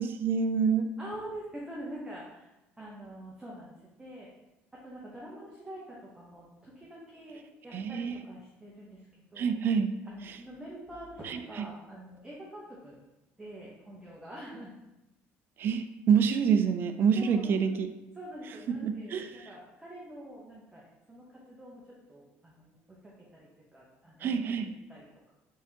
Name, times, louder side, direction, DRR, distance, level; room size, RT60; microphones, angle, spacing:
voice 1, 0.0-0.9 7.7-8.2 9.4-9.9 10.2-10.4 11.2-11.7 15.6-17.9 18.7-19.5 24.2-24.7, right 6 dB, 45° right, 8 dB, 0.3 m, -27 dB
voice 2, 1.0-2.5 2.8-3.7 4.0-4.3 4.7-9.0 9.3-9.5 10.1-13.0 13.4-14.7 17.2-17.8 18.1-20.8 21.1-22.7 23.0-25.3, right 1 dB, 10° right, -6 dB, 0.9 m, -45 dB
4.6 x 3.5 x 2.8 m, 0.97 s
cardioid pair, 105°, 5 cm